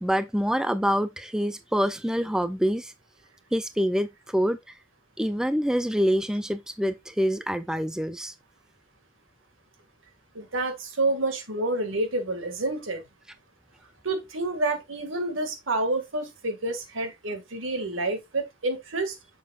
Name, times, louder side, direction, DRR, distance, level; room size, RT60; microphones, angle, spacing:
voice 1, 0.0-2.9 3.5-4.6 5.2-8.3, equal, 5° right, 0.4 m, -26 dB
voice 2, 10.4-13.0 14.0-19.1, right 2 dB, 85° right, 1.9 m, -28 dB
7.3 x 6.4 x 2.4 m
head